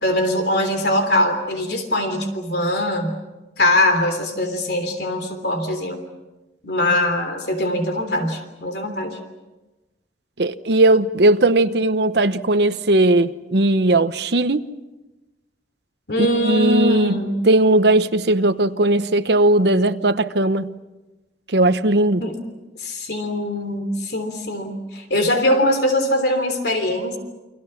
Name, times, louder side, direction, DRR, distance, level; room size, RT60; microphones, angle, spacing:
voice 1, 0.0-3.1 3.6-6.0 6.6-9.2 16.1-17.4 22.2-22.3 22.8-27.2, left 1 dB, 60° left, 3.3 m, -22 dB
voice 2, 10.4-14.6 16.2-17.2 17.4-20.7 21.5-22.2, right 2 dB, 65° right, 1.0 m, -18 dB
30.0 x 25.0 x 5.9 m
head